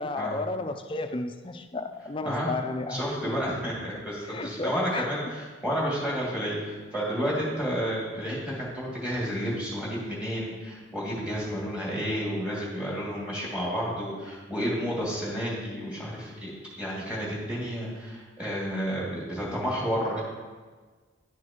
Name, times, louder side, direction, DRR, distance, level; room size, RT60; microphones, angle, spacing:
voice 1, 0.0-3.3 4.2-5.1, left 3 dB, 25° left, 7 dB, 0.4 m, -33 dB
voice 2, 2.9-20.2, equal, 5° right, -6 dB, 2.2 m, -31 dB
11.0 x 6.2 x 2.9 m, 1.4 s
head